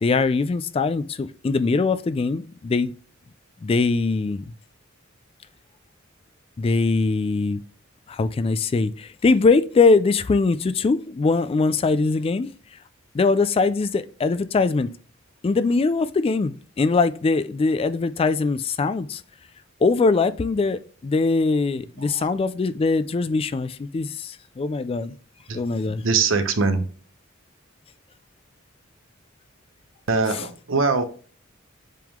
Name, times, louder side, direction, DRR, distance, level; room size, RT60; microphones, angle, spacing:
voice 1, 0.0-2.9 3.6-4.4 6.6-7.6 8.1-12.5 13.1-14.9 15.4-19.2 19.8-25.1 25.5-26.0, left 4 dB, 30° left, 0.3 m, -22 dB
voice 2, 22.0-22.3 25.5-26.9 30.1-31.0, right 4 dB, 70° right, 0.9 m, -23 dB
7.5 x 3.6 x 3.6 m
head